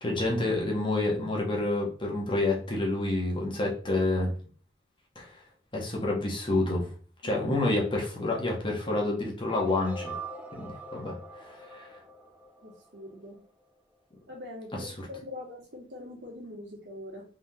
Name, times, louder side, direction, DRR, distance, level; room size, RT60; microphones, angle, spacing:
voice 1, 0.0-4.3 5.1-5.3 5.7-6.9 7.2-10.1 10.5-11.2 11.7-11.9, left 2 dB, 30° left, -2 dB, 1.2 m, -28 dB
sound 1, 9.5-13.4, right 2 dB, 5° right, 0.5 m, -43 dB
voice 2, 12.6-13.4 14.3-17.2, left 1 dB, 90° right, -3 dB, 1.8 m, -43 dB
3.6 x 3.6 x 2.9 m, 0.41 s
head